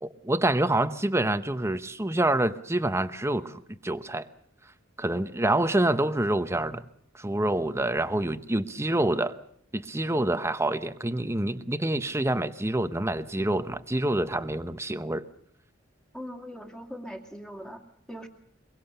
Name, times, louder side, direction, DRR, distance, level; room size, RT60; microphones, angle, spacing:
voice 1, 0.0-4.3 5.0-6.8 7.1-9.4 9.7-15.2, right 1 dB, 15° right, 0.9 m, -27 dB
voice 2, 16.1-17.8 18.1-18.3, equal, 5° left, 2.3 m, -41 dB
23.0 x 23.0 x 6.8 m
head